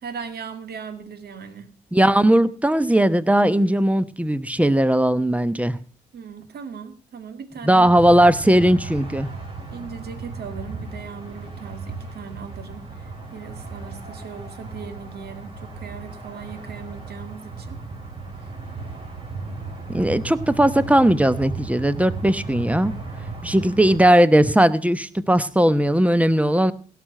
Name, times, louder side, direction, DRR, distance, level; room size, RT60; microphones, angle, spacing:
voice 1, 0.0-1.7 6.1-7.9 9.7-17.8, right 6 dB, 55° right, 9 dB, 1.9 m, -38 dB
voice 2, 1.9-5.8 7.6-9.3 19.9-22.9 23.4-26.7, right 1 dB, 5° right, 15 dB, 0.9 m, -18 dB
sound 1, 7.8-24.0, right 3 dB, 30° right, 4.4 m, -35 dB
17.0 x 6.0 x 6.5 m, 0.40 s
hypercardioid pair, 45°, 20 cm